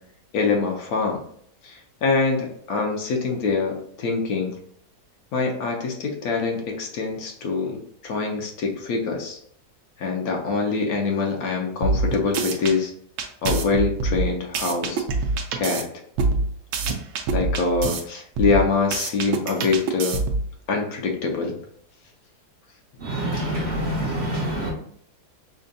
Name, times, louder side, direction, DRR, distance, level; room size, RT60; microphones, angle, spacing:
voice 1, 0.3-1.2 1.6-4.6 5.3-9.4 10.0-12.9 13.4-15.0 15.5-15.9 17.3-20.2 20.7-21.6, left 4 dB, 70° left, 1 dB, 1.1 m, -24 dB
sound 1, 11.8-12.7 13.2-15.8 16.2-18.0 18.4-20.5, right 3 dB, 75° right, 1.1 m, -25 dB
voice 2, 23.0-24.7, right 1 dB, 55° right, -2 dB, 0.8 m, -26 dB
5.1 x 2.2 x 2.6 m, 0.65 s
omnidirectional pair, 1.7 m